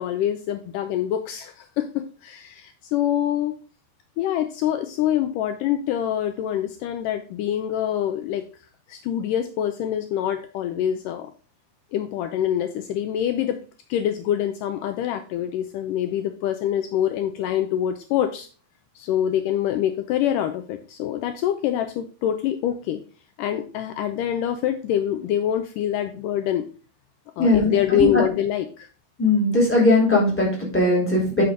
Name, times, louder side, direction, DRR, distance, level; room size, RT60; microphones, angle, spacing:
voice 1, 0.0-3.6 4.2-8.4 8.9-11.3 11.9-13.6 13.9-18.5 19.0-23.0 23.4-26.6 27.4-28.9, left 10 dB, 80° left, 7 dB, 2.2 m, -25 dB
voice 2, 27.4-27.7 28.0-28.2 29.2-31.4, left 2 dB, 5° left, -4 dB, 3.3 m, -19 dB
8.7 x 6.0 x 3.8 m, 0.37 s
omnidirectional pair, 4.0 m